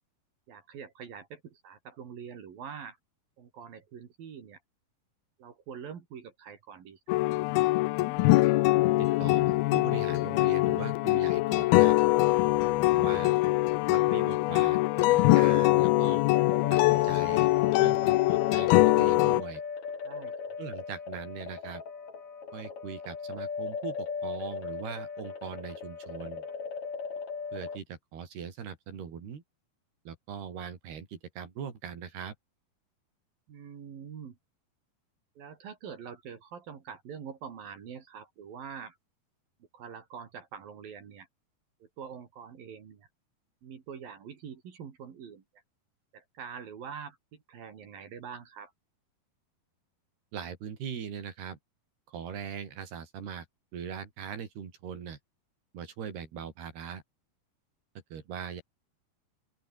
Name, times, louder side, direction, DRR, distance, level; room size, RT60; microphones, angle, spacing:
voice 1, 0.5-3.0 3.4-4.6 5.4-7.2 12.6-13.2 20.0-20.6 33.5-34.4 35.4-39.0 39.7-41.3 41.8-43.1 43.6-45.4 46.1-48.7, right 7 dB, 65° right, 4.5 m, -45 dB
sound 1, 7.1-19.4, left 18 dB, 85° left, 2.6 m, -23 dB
voice 2, 9.0-12.0 12.9-13.3 13.9-16.2 16.7-17.5 17.8-19.6 20.6-21.8 22.5-26.5 27.5-29.4 30.1-32.3 50.3-51.6 52.1-53.5 53.7-55.2 55.7-57.0 58.1-58.6, right 7 dB, 85° right, 5.8 m, -40 dB
sound 2, 16.3-27.8, left 5 dB, 45° left, 5.2 m, -39 dB
open air
omnidirectional pair, 4.4 m